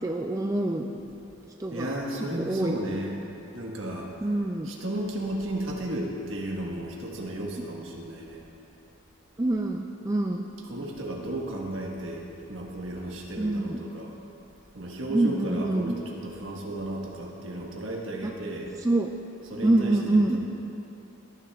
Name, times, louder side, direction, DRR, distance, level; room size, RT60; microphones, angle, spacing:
voice 1, 0.0-0.9 1.6-1.9 2.4-2.7 4.2-4.7 9.4-10.5 13.4-13.8 15.1-16.0 18.2-18.3 18.8-19.1 19.6-20.4, right 2 dB, 15° right, 2 dB, 0.3 m, -25 dB
voice 2, 1.7-3.1 3.5-4.4 4.6-8.4 10.6-14.2 14.7-18.7 19.5-20.4, right 1 dB, 65° right, -1 dB, 1.5 m, -34 dB
17.5 x 10.5 x 2.4 m, 2.8 s
head